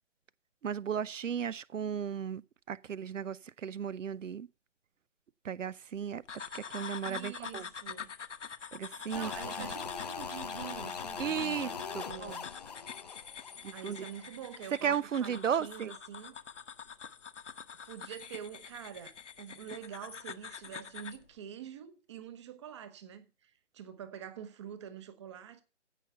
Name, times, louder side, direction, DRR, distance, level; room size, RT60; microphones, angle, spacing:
voice 1, 0.6-2.4 2.7-4.5 5.4-6.2 6.5-7.7 8.7-9.7 11.2-12.4 13.6-14.0 14.8-15.9, right 8 dB, 85° right, 0.6 m, -35 dB
sound 1, 6.3-21.2, left 7 dB, 75° left, 1.0 m, -46 dB
voice 2, 7.0-8.1 9.1-12.4 13.7-16.4 17.8-25.6, right 9 dB, 25° right, 1.0 m, -46 dB
sound 2, 9.1-14.3 14.5-14.6, left 6 dB, 35° left, 0.6 m, -41 dB
15.5 x 5.7 x 5.6 m
figure-of-eight pair, 150°, 37 cm